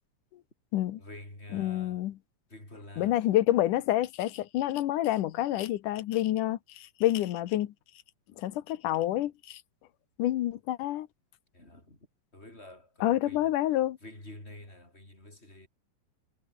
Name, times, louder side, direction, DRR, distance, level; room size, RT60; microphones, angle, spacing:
voice 1, 1.0-2.0 2.5-3.2 11.5-12.1 12.3-13.5 14.0-15.7, left 1 dB, 15° left, 8.2 m, -48 dB
voice 2, 1.5-2.1 3.0-7.7 8.4-9.6 10.2-11.1 13.0-14.0, left 14 dB, 70° left, 2.5 m, -28 dB
omnidirectional pair, 4.1 m